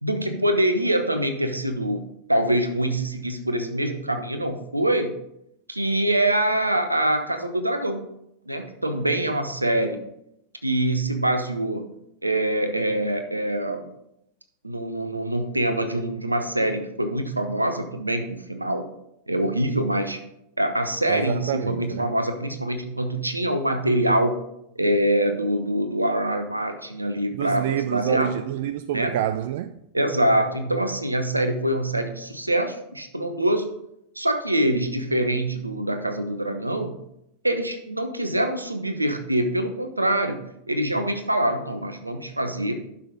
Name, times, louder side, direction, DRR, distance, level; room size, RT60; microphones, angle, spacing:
voice 1, 0.0-2.0 2.3-5.1 5.7-8.1 8.5-10.0 10.6-11.9 12.2-13.9 14.6-18.8 19.3-20.2 20.6-24.4 24.8-28.4 28.9-29.1 29.9-33.7 34.2-37.0 37.4-40.4 40.7-42.7, right 1 dB, 85° right, 0.9 m, -24 dB
voice 2, 21.1-22.1 27.4-29.7, right 11 dB, 55° right, 0.3 m, -27 dB
11.0 x 5.9 x 3.9 m
figure-of-eight pair, 90°, 0 cm